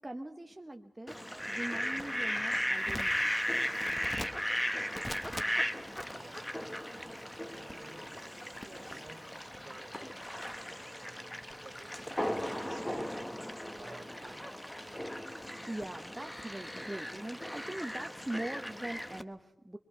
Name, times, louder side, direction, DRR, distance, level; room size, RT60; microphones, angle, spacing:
voice 1, 0.0-3.4 8.8-9.1 15.7-19.8, right 1 dB, 15° right, 3 dB, 1.1 m, -42 dB
Fowl, 1.1-19.2, equal, 10° left, 1.1 m, -37 dB
voice 2, 6.1-6.6 7.5-10.0 10.3-13.1 13.7-14.5, right 3 dB, 45° right, 5 dB, 2.9 m, -54 dB
24.0 x 23.0 x 5.7 m, 0.83 s
wide cardioid pair, 90°, 0 cm